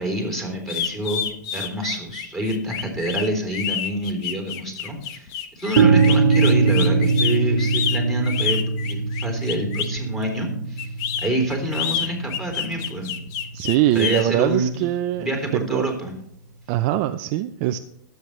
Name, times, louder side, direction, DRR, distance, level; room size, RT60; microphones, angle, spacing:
voice 1, 0.0-10.9 11.2-13.2 13.9-14.7 15.2-16.1, right 1 dB, ahead, 1 dB, 3.5 m, -27 dB
sound 1, 0.7-10.0 10.8-14.2, left 8 dB, 35° left, 1.1 m, -28 dB
sound 2, 5.8-13.6, right 4 dB, 60° right, 1.2 m, -22 dB
voice 2, 13.5-15.3 15.5-15.8 16.7-17.8, right 13 dB, 40° right, 8 dB, 0.5 m, -22 dB
21.5 x 8.1 x 3.2 m, 0.75 s
hypercardioid pair, 130°, 10 cm